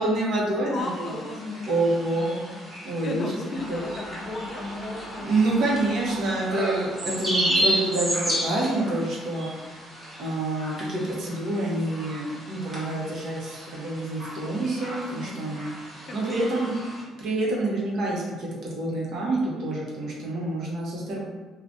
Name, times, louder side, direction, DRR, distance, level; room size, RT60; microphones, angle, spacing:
voice 1, 0.0-1.2 1.7-2.4 2.8-3.4 3.7-3.9 5.2-9.5 10.2-16.8 17.2-21.2, right 2 dB, 65° right, -4 dB, 0.9 m, -27 dB
voice 2, 0.6-1.7 2.1-2.6 3.0-5.8 15.0-15.5 16.1-16.6, left 3 dB, 40° left, 2 dB, 0.4 m, -35 dB
sound 1, 0.8-17.0, equal, 20° right, 1.1 m, -33 dB
sound 2, 3.5-10.0, equal, 10° left, 1.0 m, -39 dB
2.6 x 2.4 x 3.5 m, 1.3 s
cardioid pair, 115°, 0 cm